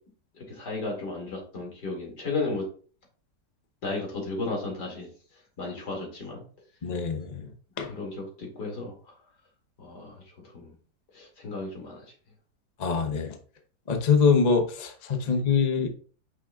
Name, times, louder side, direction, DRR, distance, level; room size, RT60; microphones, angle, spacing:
voice 1, 0.3-2.6 3.8-5.1 5.6-6.4 7.9-8.9 9.8-10.2 10.5-10.7 11.1-12.0, left 3 dB, 70° left, -1 dB, 2.8 m, -34 dB
voice 2, 6.8-7.5 7.8-7.9 12.8-13.4 13.9-15.9, left 5 dB, 35° left, 4 dB, 0.7 m, -24 dB
8.8 x 6.3 x 2.3 m, 0.42 s
omnidirectional pair, 1.9 m